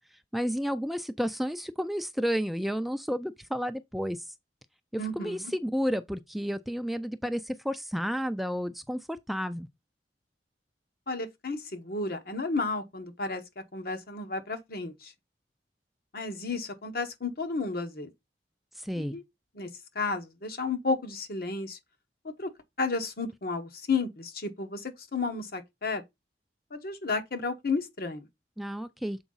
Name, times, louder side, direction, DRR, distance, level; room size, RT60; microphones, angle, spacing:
voice 1, 0.1-4.3 4.9-9.7 18.7-19.2 28.6-29.2, equal, ahead, 0.3 m, -31 dB
voice 2, 5.0-5.5 11.1-13.4 13.7-15.1 16.1-18.1 19.0-19.2 19.5-19.7 19.9-21.8 22.4-22.5 22.8-26.0 26.7-28.3, left 3 dB, 60° left, 1.2 m, -32 dB
7.0 x 4.7 x 3.9 m
head